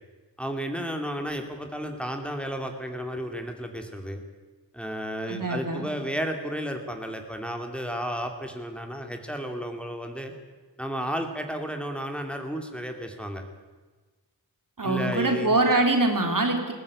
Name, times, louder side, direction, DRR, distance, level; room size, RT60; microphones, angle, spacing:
voice 1, 0.4-4.2 4.7-10.3 10.8-13.4 14.8-15.6, equal, 5° left, 4 dB, 2.6 m, -33 dB
voice 2, 5.3-5.9 14.8-16.7, right 2 dB, 50° right, 4 dB, 3.5 m, -24 dB
20.0 x 15.5 x 8.6 m, 1.3 s
cardioid pair, 50°, 41 cm